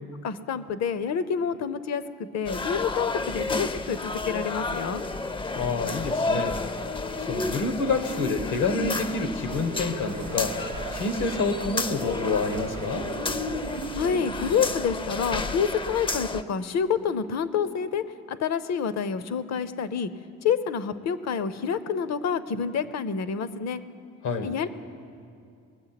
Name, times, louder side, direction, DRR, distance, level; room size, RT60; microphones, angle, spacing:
voice 1, 0.2-5.0 13.9-20.1 20.4-23.8 24.4-24.7, left 6 dB, 60° left, 14 dB, 0.7 m, -28 dB
sound 1, 2.4-16.4, left 3 dB, 15° left, 0.4 m, -31 dB
voice 2, 5.6-6.6 7.3-13.1 24.2-24.5, left 4 dB, 85° left, 8 dB, 1.2 m, -28 dB
sound 2, 9.5-14.7, right 10 dB, 85° right, 0.5 m, -38 dB
20.0 x 7.7 x 5.8 m, 2.4 s
cardioid pair, 90°, 30 cm